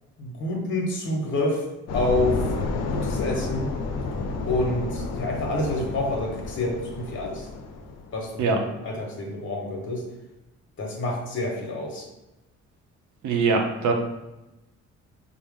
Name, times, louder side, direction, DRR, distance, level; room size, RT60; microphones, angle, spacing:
voice 1, 0.2-1.6 1.9-2.4 2.7-3.7 4.5-7.5 8.1-10.0 10.8-12.1, left 1 dB, 40° left, -1 dB, 0.9 m, -28 dB
sound 1, 1.9-8.2, left 3 dB, 60° left, 0.5 m, -30 dB
voice 2, 13.2-13.9, right 4 dB, 75° right, 2 dB, 0.7 m, -22 dB
4.1 x 2.0 x 3.5 m, 0.99 s
cardioid pair, 90°, 30 cm